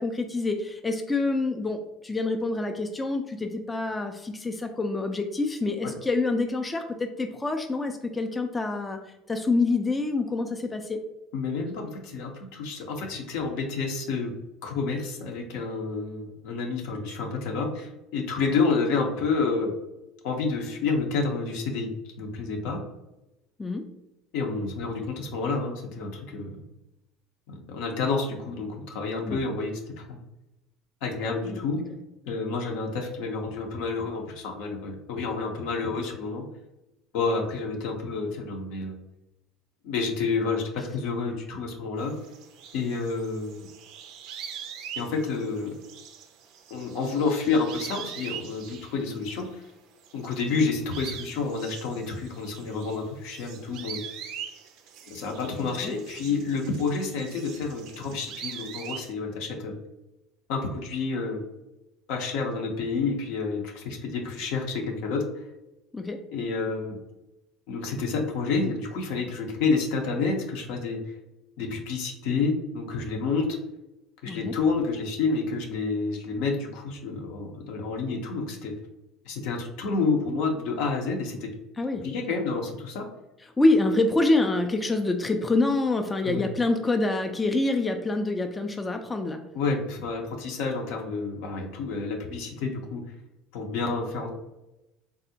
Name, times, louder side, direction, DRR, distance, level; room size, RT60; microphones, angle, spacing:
voice 1, 0.0-9.0 9.3-11.0 23.6-23.8 29.3-29.4 31.4-31.6 55.6-55.9 65.9-66.2 74.3-74.5 81.8-82.0 83.6-89.4, left 2 dB, 20° left, 5 dB, 0.3 m, -26 dB
voice 2, 11.3-14.3 14.6-19.7 20.2-22.8 24.3-26.6 27.5-30.2 31.0-31.8 32.3-36.4 37.1-38.9 39.8-42.1 42.7-43.7 45.0-45.8 46.7-49.6 50.1-54.0 55.1-59.8 60.5-61.5 62.1-65.2 66.3-67.0 67.7-71.0 71.6-73.5 74.2-78.7 79.3-81.5 81.9-83.1 86.2-86.5 89.5-93.0 93.5-94.3, left 4 dB, 70° left, 2 dB, 0.6 m, -29 dB
sound 1, 42.0-49.7 50.0-59.1, right 8 dB, 65° right, 0.4 m, -43 dB
3.5 x 2.0 x 2.7 m, 0.94 s
hypercardioid pair, 75°, 0 cm